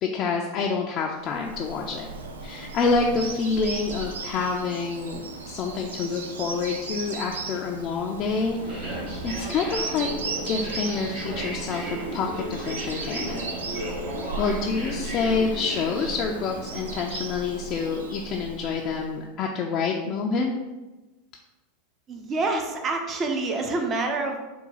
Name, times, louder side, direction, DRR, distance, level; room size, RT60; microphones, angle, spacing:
voice 1, 0.0-2.1 2.4-10.1 10.5-13.5 14.4-20.5, left 4 dB, 45° left, 0 dB, 0.4 m, -27 dB
Bird vocalization bird call bird song, 1.2-19.2, right 3 dB, 80° right, 0.4 m, -37 dB
sound 1, 8.3-17.0, right 1 dB, 65° right, 1.3 m, -35 dB
voice 2, 22.1-24.5, right 3 dB, 35° right, 3 dB, 0.6 m, -27 dB
3.9 x 2.3 x 4.0 m, 1.1 s
hypercardioid pair, 90°, 0 cm